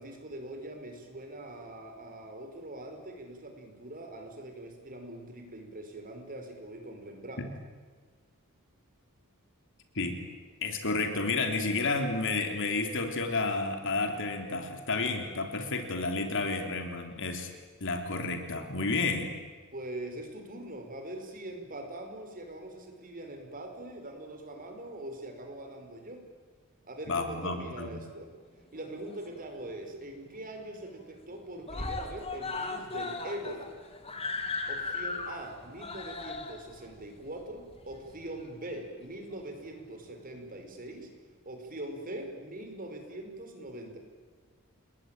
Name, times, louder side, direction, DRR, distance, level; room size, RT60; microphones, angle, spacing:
voice 1, 0.0-7.5 19.7-26.2 26.8-28.3 28.7-33.8 34.7-41.1 41.4-44.0, right 1 dB, 40° right, 5 dB, 4.9 m, -42 dB
voice 2, 10.6-17.5 17.8-19.3 27.1-28.0, left 3 dB, 60° left, 5 dB, 3.6 m, -31 dB
Screaming, 28.8-29.7 30.0-30.1 30.4-30.5 30.8-31.3 31.6-38.5 39.3-39.4, left 3 dB, 25° left, 2.4 m, -37 dB
29.0 x 21.0 x 9.0 m, 1.4 s
head